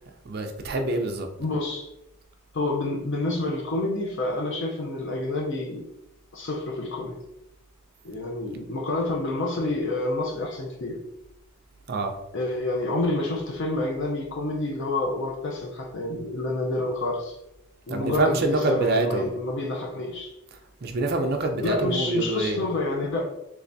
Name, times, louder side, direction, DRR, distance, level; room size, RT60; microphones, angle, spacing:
voice 1, 0.3-1.3 11.9-12.1 17.9-19.3 20.8-22.6, right 2 dB, 45° right, 4 dB, 0.4 m, -25 dB
voice 2, 1.4-1.9 2.5-5.9 6.3-7.2 8.0-11.0 12.3-17.4 17.9-20.4 21.6-23.2, left 2 dB, 55° left, 0 dB, 0.6 m, -28 dB
3.3 x 3.3 x 2.6 m, 0.86 s
head